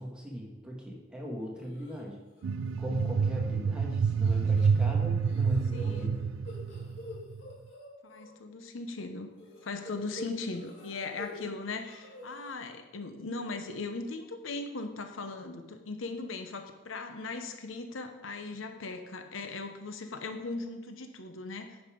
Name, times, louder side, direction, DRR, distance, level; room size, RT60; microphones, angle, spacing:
voice 1, 0.0-2.2 2.8-6.2, equal, 5° right, -2 dB, 1.6 m, -39 dB
sound 1, 1.6-2.0 2.4-2.7 3.0-3.1 4.2-4.9 5.2-8.3 9.4-11.4 11.7-12.5, left 1 dB, 70° left, 2.3 m, -46 dB
sound 2, 2.4-7.5, right 5 dB, 90° right, 0.4 m, -28 dB
voice 2, 4.3-4.8 5.7-6.2 8.0-9.3 9.6-21.8, left 3 dB, 90° left, 6 dB, 0.9 m, -39 dB
9.6 x 5.6 x 5.1 m, 1.1 s
head